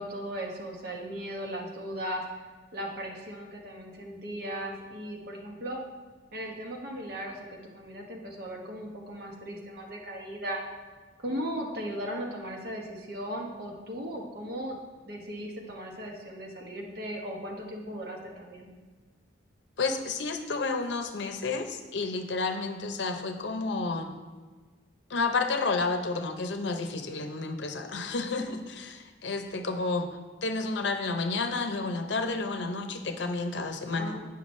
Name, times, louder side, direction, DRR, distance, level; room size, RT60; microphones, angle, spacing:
voice 1, 0.0-2.2 2.7-5.8 6.3-10.6 11.2-14.8 15.0-18.7 33.9-34.2, equal, 55° right, 1 dB, 1.0 m, -37 dB
voice 2, 19.8-24.1 25.1-30.1 30.4-34.2, left 3 dB, 70° left, 6 dB, 0.6 m, -31 dB
8.7 x 5.7 x 3.2 m, 1.4 s
head